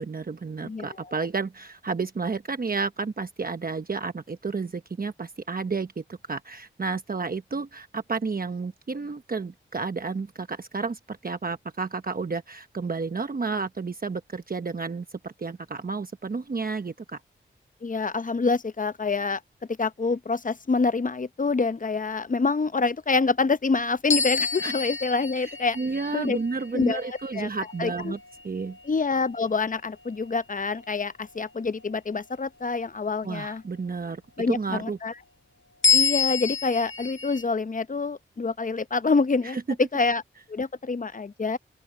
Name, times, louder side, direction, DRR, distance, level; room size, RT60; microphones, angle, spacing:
voice 1, 0.0-17.2 24.6-24.7 25.4-28.2 28.4-28.8 33.2-34.2 34.5-35.0 39.4-39.6, right 4 dB, 45° right, 1.0 m, -31 dB
voice 2, 17.8-19.4 19.8-25.8 26.1-26.4 26.7-27.0 27.3-27.5 27.8-28.1 28.8-33.6 34.4-35.1 35.9-39.6 39.9-40.2 40.5-41.6, left 4 dB, 40° left, 0.8 m, -26 dB
sound 1, 24.1-28.8 29.4-29.7 35.8-37.4, left 5 dB, 65° left, 1.4 m, -28 dB
open air
cardioid pair, 55°, 21 cm